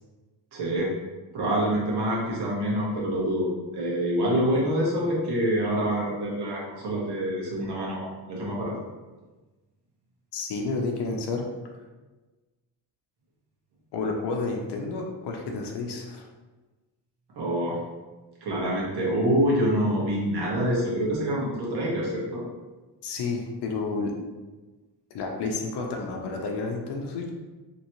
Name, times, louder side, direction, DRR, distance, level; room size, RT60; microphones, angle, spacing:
voice 1, 0.5-0.9 1.3-3.5 3.7-8.8 17.4-17.8 18.4-22.4, equal, 70° right, -4 dB, 1.0 m, -26 dB
voice 2, 10.3-11.4 13.9-16.3 23.0-24.1 25.1-27.3, left 3 dB, 70° left, 1 dB, 0.6 m, -30 dB
3.0 x 2.9 x 2.7 m, 1.2 s
wide cardioid pair, 160°, 41 cm